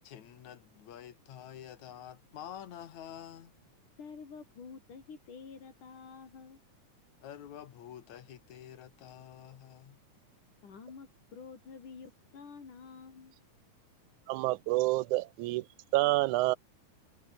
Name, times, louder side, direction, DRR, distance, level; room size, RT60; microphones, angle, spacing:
voice 1, 0.0-3.5 7.2-10.0, left 10 dB, 70° left, 3.1 m, -48 dB
voice 2, 4.0-6.6 10.6-13.3, left 5 dB, 85° left, 6.0 m, -49 dB
voice 3, 14.3-15.6 15.9-16.6, right 18 dB, 85° right, 2.0 m, -28 dB
omnidirectional pair, 3.5 m